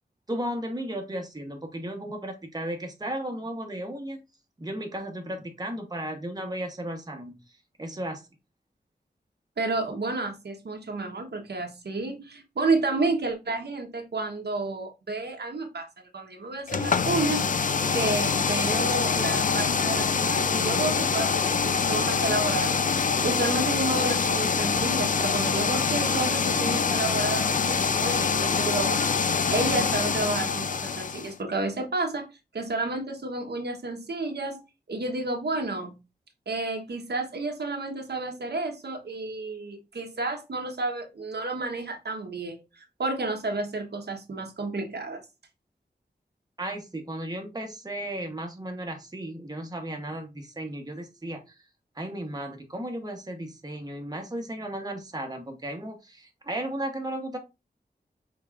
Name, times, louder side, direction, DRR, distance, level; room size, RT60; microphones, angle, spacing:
voice 1, 0.3-4.2 4.6-7.4 7.8-8.3 46.6-51.5 51.9-57.4, right 1 dB, 25° right, 3 dB, 1.0 m, -35 dB
voice 2, 9.6-15.9 16.1-22.9 23.2-32.3 32.5-34.6 34.9-36.0 36.5-45.2, right 2 dB, 75° right, 3 dB, 1.1 m, -31 dB
sound 1, 16.7-31.3, left 5 dB, 50° left, 0.4 m, -25 dB
5.4 x 3.8 x 2.4 m, 0.25 s
wide cardioid pair, 90°, 17 cm